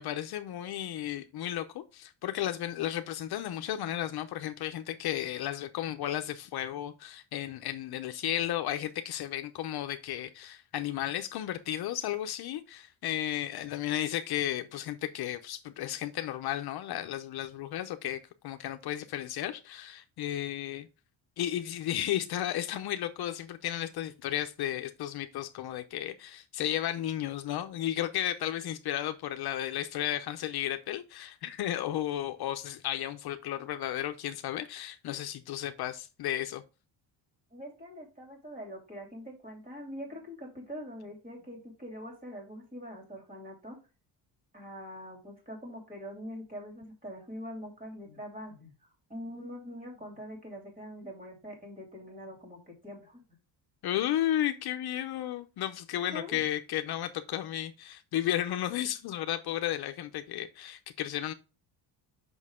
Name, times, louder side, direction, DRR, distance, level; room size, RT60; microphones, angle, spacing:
voice 1, 0.0-20.9 21.4-36.6 53.8-61.3, left 12 dB, 60° left, 0.7 m, -33 dB
voice 2, 37.5-43.8 44.5-48.7 49.1-53.2 56.1-56.4, equal, 20° right, 3.1 m, -43 dB
6.3 x 5.5 x 3.6 m
cardioid pair, 160°, 43 cm